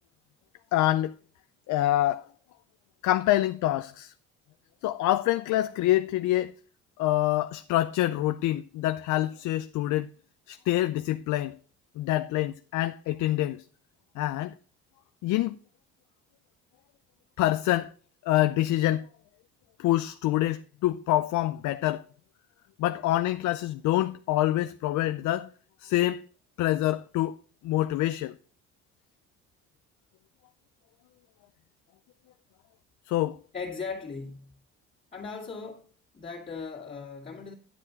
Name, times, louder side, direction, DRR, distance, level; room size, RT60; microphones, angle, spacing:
voice 1, 0.7-1.1 1.7-2.2 3.0-4.1 4.8-6.5 7.0-10.1 10.5-11.5 12.0-13.6 14.2-14.5 15.2-15.6 17.4-17.9 18.3-19.0 19.8-22.0 22.8-25.5 25.8-26.2 26.6-27.4 27.6-28.3 33.1-33.4, left 15 dB, 70° left, 0.5 m, -26 dB
voice 2, 33.5-34.5 35.1-35.9 36.1-37.5, left 5 dB, 25° left, 2.3 m, -38 dB
9.8 x 7.6 x 3.9 m
cardioid pair, 85°, 31 cm